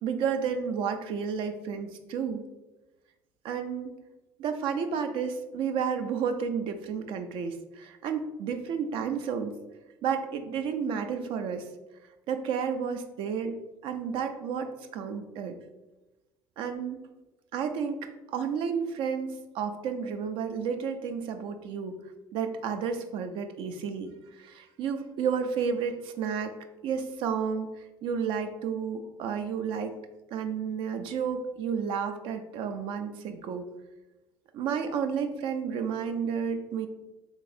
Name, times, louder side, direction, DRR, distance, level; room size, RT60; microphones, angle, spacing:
voice 1, 0.0-2.4 3.4-4.0 4.4-9.6 10.0-11.7 12.3-15.6 16.6-17.1 17.5-22.0 22.3-26.6 26.8-30.0 30.3-33.7 34.5-36.9, right 6 dB, 70° right, 7 dB, 0.4 m, -31 dB
3.8 x 2.8 x 2.5 m, 1.1 s
supercardioid pair, 95°, 9 cm